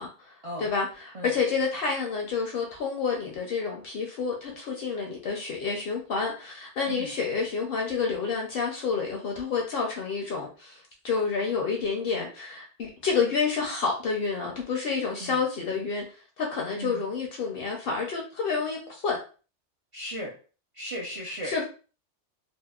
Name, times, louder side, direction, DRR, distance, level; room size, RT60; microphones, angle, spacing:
voice 1, 0.0-0.3 0.6-16.0 16.4-19.2 21.4-21.6, left 5 dB, 60° left, 0 dB, 0.6 m, -29 dB
voice 2, 16.7-17.0 19.9-20.3 20.7-21.6, equal, 60° right, -4 dB, 0.3 m, -36 dB
2.7 x 2.0 x 2.3 m, 0.36 s
omnidirectional pair, 1.2 m